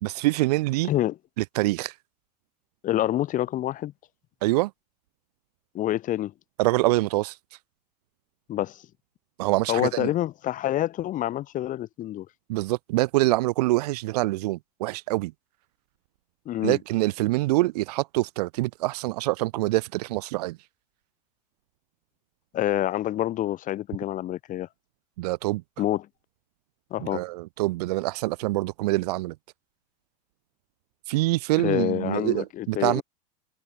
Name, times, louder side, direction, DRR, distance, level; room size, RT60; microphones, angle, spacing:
voice 1, 0.0-0.9 1.4-2.0 4.4-4.7 6.6-7.6 9.4-10.1 12.5-15.3 16.6-20.6 25.2-25.6 27.0-29.3 31.1-33.0, right 19 dB, 70° right, 1.1 m, -25 dB
voice 2, 2.8-3.9 5.7-6.3 8.5-8.8 9.7-12.3 16.5-16.8 22.5-24.7 25.8-26.1 26.9-27.3 31.6-33.0, left 13 dB, 40° left, 3.9 m, -27 dB
hypercardioid pair, 110°, 21 cm